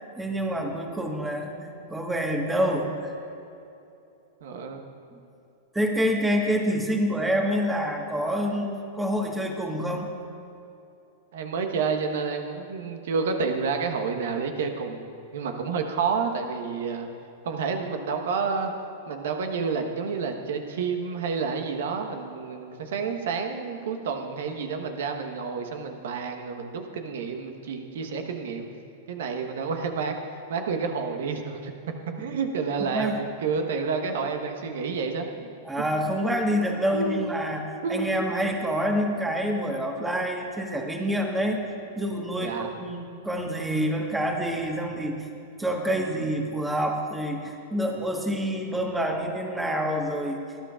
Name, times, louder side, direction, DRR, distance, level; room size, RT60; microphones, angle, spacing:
voice 1, 0.2-3.1 5.1-5.2 5.7-10.1 32.9-33.2 35.6-41.6 42.0-43.0 43.2-45.3 45.6-50.4, equal, 10° right, 2 dB, 1.5 m, -27 dB
voice 2, 4.4-4.8 11.3-15.1 15.3-17.1 17.4-18.7 19.1-28.7 29.1-30.1 30.5-31.7 32.2-35.9 36.9-37.2 37.8-38.1 42.4-42.7, right 5 dB, 65° right, 5 dB, 1.2 m, -29 dB
19.5 x 10.0 x 2.5 m, 2.8 s
figure-of-eight pair, 100°, 0 cm